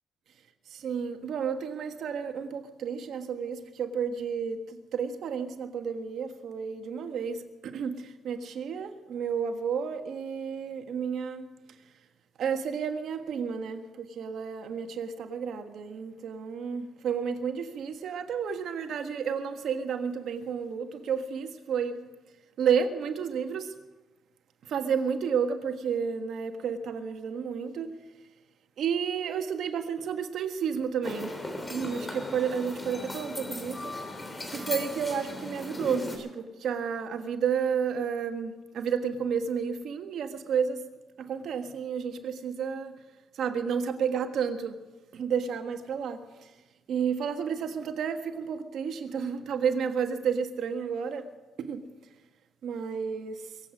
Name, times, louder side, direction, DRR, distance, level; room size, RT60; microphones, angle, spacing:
voice 1, 0.7-11.8 12.4-22.0 22.6-23.7 24.6-28.0 28.8-31.3 31.7-33.9 34.5-40.8 41.2-42.9 43.3-44.8 45.1-46.5 46.9-51.3 51.6-51.8 52.6-53.6, right 7 dB, 70° right, 1.5 m, -31 dB
sound 1, 31.0-36.2, left 1 dB, 20° left, 3.3 m, -37 dB
23.0 x 8.3 x 6.3 m
cardioid pair, 90°, 0 cm